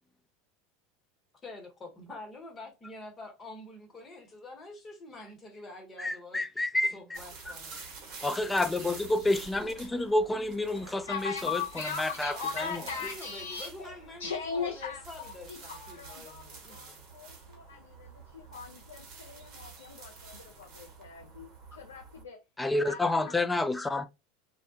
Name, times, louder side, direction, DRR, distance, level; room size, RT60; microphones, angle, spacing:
voice 1, 1.4-7.8 8.8-10.0 12.3-17.0, left 2 dB, 25° left, 0.9 m, -47 dB
voice 2, 6.0-6.9 8.2-11.3 12.0-12.3 22.6-24.1, left 2 dB, 10° left, 0.3 m, -28 dB
sound 1, 7.1-22.2, right 4 dB, 50° right, 1.1 m, -48 dB
voice 3, 10.6-22.4 22.7-23.4, left 6 dB, 90° left, 0.4 m, -40 dB
2.2 x 2.1 x 2.6 m
hypercardioid pair, 90°, 0 cm